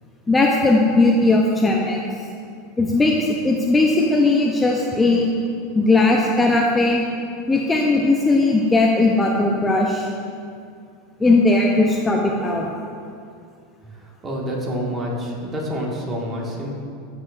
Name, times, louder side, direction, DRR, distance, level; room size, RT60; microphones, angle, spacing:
voice 1, 0.3-2.0 2.8-5.3 5.7-7.0 7.5-10.1 11.2-12.7, left 2 dB, 15° left, -1 dB, 0.6 m, -18 dB
voice 2, 13.9-16.7, equal, 25° right, -3 dB, 1.6 m, -28 dB
13.0 x 4.9 x 2.5 m, 2.3 s
supercardioid pair, 110°, 0 cm